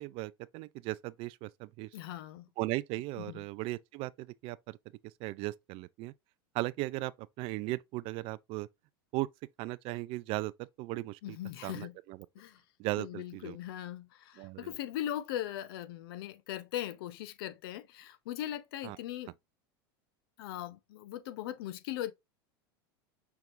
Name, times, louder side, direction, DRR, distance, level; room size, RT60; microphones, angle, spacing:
voice 1, 0.0-1.9 2.6-4.8 5.2-6.1 6.5-7.1 7.4-8.7 9.1-9.3 9.6-11.4 11.6-12.2 12.8-13.6 14.4-14.7 18.8-19.0, right 19 dB, 50° right, 0.4 m, -37 dB
voice 2, 1.9-2.5 3.2-3.4 11.2-11.9 12.3-12.6 13.0-19.3 20.4-22.1, left 12 dB, 70° left, 0.7 m, -39 dB
5.9 x 3.5 x 2.5 m
supercardioid pair, 120°, 13 cm